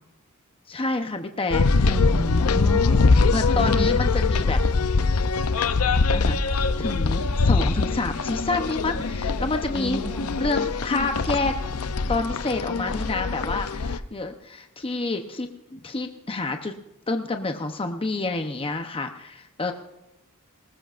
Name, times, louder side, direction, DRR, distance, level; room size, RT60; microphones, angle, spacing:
voice 1, 0.7-1.9 3.3-4.6 6.1-10.0 10.4-11.6 12.1-16.7 17.1-19.7, left 3 dB, 25° left, 5 dB, 0.8 m, -28 dB
sound 1, 1.5-14.0, left 4 dB, 80° left, 0.6 m, -23 dB
voice 2, 1.8-3.1 3.5-4.0 9.7-10.3, equal, 5° left, -2 dB, 5.1 m, -31 dB
20.0 x 19.5 x 2.5 m, 0.92 s
head